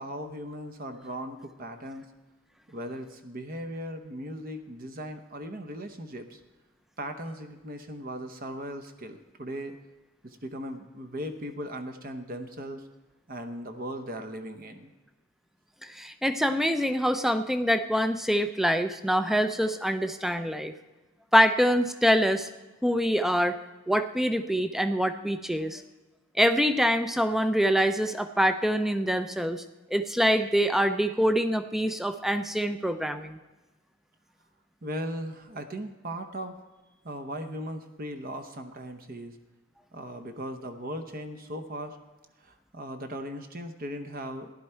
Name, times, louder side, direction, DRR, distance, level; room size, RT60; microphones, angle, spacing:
voice 1, 0.0-2.1 2.7-6.4 7.0-9.7 10.2-12.8 13.3-14.9 34.8-36.6 37.0-39.4 39.9-42.0 42.4-44.5, equal, 40° right, 7 dB, 0.8 m, -38 dB
voice 2, 15.8-20.7 21.3-22.5 22.8-23.6 23.9-25.8 26.4-29.6 29.9-33.4, equal, ahead, 9 dB, 0.5 m, -25 dB
15.5 x 11.0 x 4.4 m, 1.2 s
head